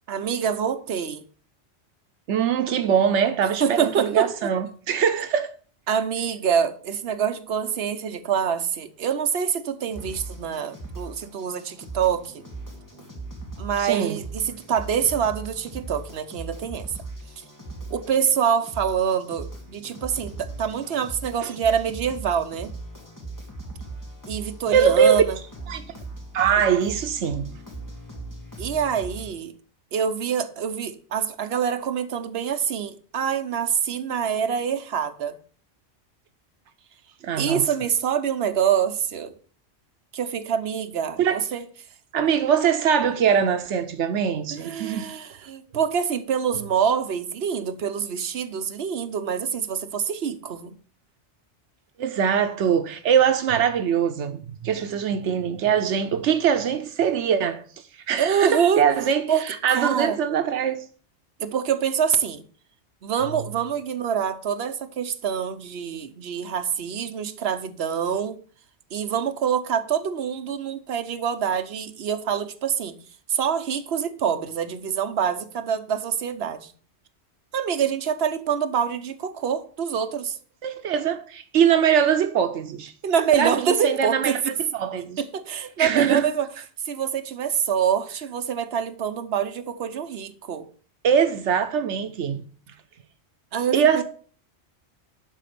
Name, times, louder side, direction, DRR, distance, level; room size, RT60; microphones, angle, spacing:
voice 1, 0.1-1.2 3.6-4.5 5.9-12.4 13.6-16.9 17.9-22.7 24.3-25.4 28.6-29.5 29.9-35.4 37.4-39.3 40.1-41.7 44.5-50.8 58.2-58.8 59.3-59.4 59.7-60.2 61.4-62.4 63.0-68.4 68.9-72.9 73.3-76.7 77.5-80.4 83.0-84.5 85.2-86.5 86.8-90.6 93.5-94.0, right 8 dB, 65° right, 1.1 m, -25 dB
voice 2, 2.3-5.5 13.8-14.2 21.4-21.5 24.7-25.2 25.7-25.8 26.3-27.4 37.2-37.6 41.2-41.4 42.1-45.1 52.0-57.6 58.1-60.8 80.6-82.9 83.4-84.4 84.7-85.2 85.8-86.3 91.0-92.4 93.7-94.0, right 8 dB, 85° right, 1.0 m, -22 dB
sound 1, 9.9-29.3, right 2 dB, 15° left, 2.2 m, -39 dB
11.5 x 4.2 x 6.8 m
omnidirectional pair, 1.2 m